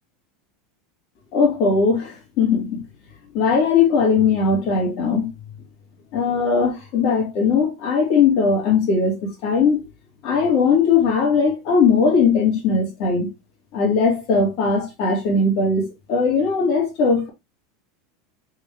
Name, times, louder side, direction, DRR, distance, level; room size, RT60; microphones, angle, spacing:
voice 1, 1.3-2.8 3.3-5.3 6.1-9.8 10.2-13.3 13.7-17.3, left 5 dB, 55° left, 1.9 m, -19 dB
3.7 x 3.0 x 3.5 m
supercardioid pair, 145°, 0 cm